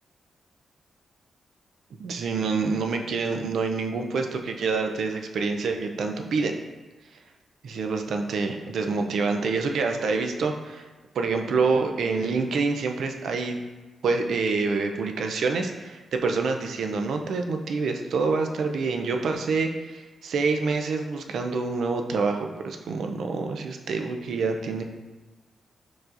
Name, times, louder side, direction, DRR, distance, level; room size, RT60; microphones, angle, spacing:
voice 1, 2.0-6.6 7.6-10.9 11.1-13.6 14.0-24.8, right 4 dB, 75° right, 4 dB, 0.4 m, -27 dB
4.6 x 4.0 x 2.5 m, 1.2 s
cardioid pair, 105°, 0 cm